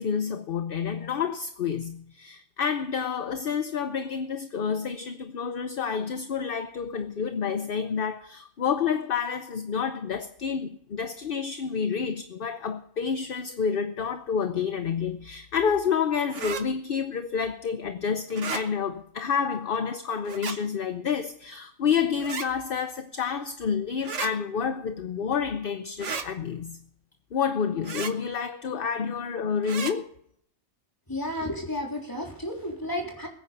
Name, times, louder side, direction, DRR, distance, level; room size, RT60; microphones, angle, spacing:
voice 1, 0.0-26.8 27.3-30.1, left 6 dB, 45° left, 0.9 m, -29 dB
sound 1, 16.3-16.6 18.3-18.6 20.3-20.6 22.2-22.5 24.0-24.3 26.0-26.3 27.8-28.1 29.6-29.9, right 5 dB, 60° right, 1.5 m, -33 dB
voice 2, 31.1-33.3, left 1 dB, 15° left, 3.6 m, -32 dB
21.5 x 9.4 x 5.6 m
omnidirectional pair, 1.5 m